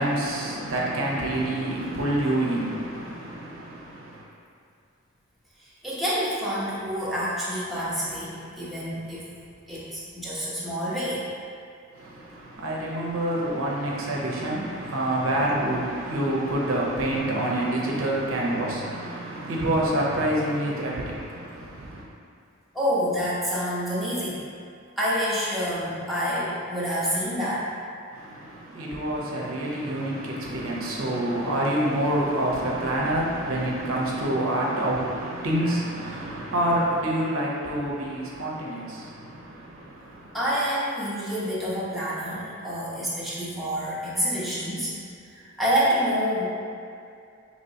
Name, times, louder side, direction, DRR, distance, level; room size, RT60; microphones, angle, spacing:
voice 1, 0.0-4.2 11.9-22.1 28.1-40.4, right 1 dB, 80° right, -4 dB, 0.7 m, -27 dB
voice 2, 5.8-9.3 9.7-11.2 22.7-24.4 25.0-27.6 40.3-44.9 45.3-46.4, equal, ahead, -10 dB, 0.8 m, -27 dB
4.3 x 3.0 x 2.7 m, 2.4 s
head